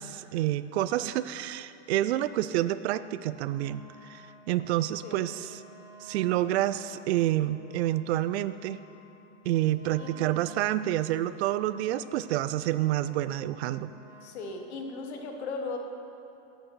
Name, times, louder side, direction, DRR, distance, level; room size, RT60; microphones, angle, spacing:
voice 1, 0.0-3.8 4.1-4.2 4.5-5.6 6.0-8.8 9.5-13.9, right 14 dB, 75° right, 14 dB, 0.5 m, -28 dB
Wind instrument woodwind instrument, 3.4-14.4, right 2 dB, 5° right, 1.2 m, -52 dB
voice 2, 14.2-15.8, left 3 dB, 90° left, 3 dB, 1.4 m, -37 dB
8.3 x 6.5 x 6.2 m, 2.9 s
supercardioid pair, 155°, 32 cm